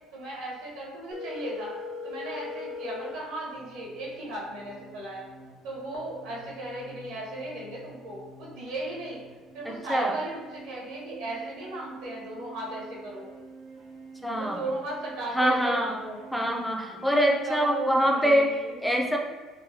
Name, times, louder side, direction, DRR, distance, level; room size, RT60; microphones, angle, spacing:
voice 1, 0.1-1.8 2.0-5.2 5.6-9.2 9.5-13.3 14.3-16.2 17.0-18.8, right 1 dB, 80° right, -3 dB, 0.9 m, -36 dB
Telephone, 1.1-3.1, left 4 dB, 70° left, 0.6 m, -37 dB
sound 1, 3.5-16.6, right 3 dB, 55° right, 0.5 m, -49 dB
voice 2, 9.7-10.1 14.2-14.6 15.3-15.9 16.3-19.2, equal, ahead, 1 dB, 0.3 m, -24 dB
3.0 x 2.1 x 2.7 m, 1.4 s
cardioid pair, 140°, 0 cm